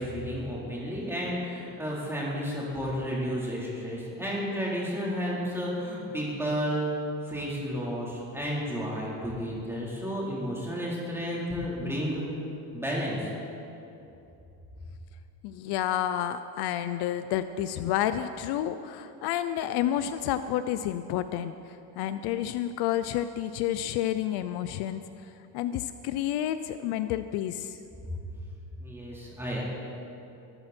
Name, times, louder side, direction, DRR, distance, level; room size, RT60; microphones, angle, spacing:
voice 1, 0.0-6.8 7.2-12.2 12.7-13.3 28.1-28.2 28.8-29.6, equal, 5° right, -6 dB, 4.0 m, -32 dB
voice 2, 15.4-25.0 25.5-27.8, left 11 dB, 65° left, 11 dB, 0.7 m, -30 dB
21.5 x 13.5 x 4.4 m, 2.8 s
cardioid pair, 150°, 42 cm